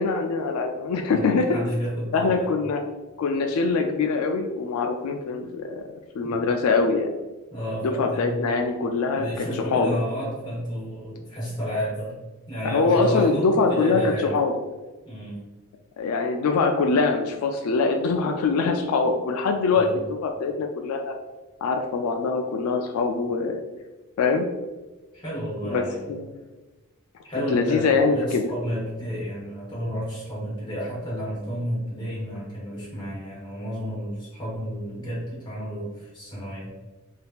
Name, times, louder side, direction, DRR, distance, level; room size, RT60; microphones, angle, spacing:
voice 1, 0.0-1.5 2.1-2.8 3.2-5.8 6.1-7.1 7.8-10.0 12.6-14.5 16.0-19.9 20.2-21.1 21.6-23.6 24.2-24.5 25.7-25.8 26.1-26.3 27.5-28.4, left 4 dB, 85° left, 4 dB, 0.3 m, -23 dB
voice 2, 1.1-2.5 6.2-6.4 7.5-8.4 9.2-12.1 12.5-14.3 15.0-15.4 19.7-20.0 25.1-26.1 27.2-36.7, equal, 20° left, -7 dB, 1.4 m, -31 dB
3.5 x 2.7 x 2.3 m, 1.2 s
head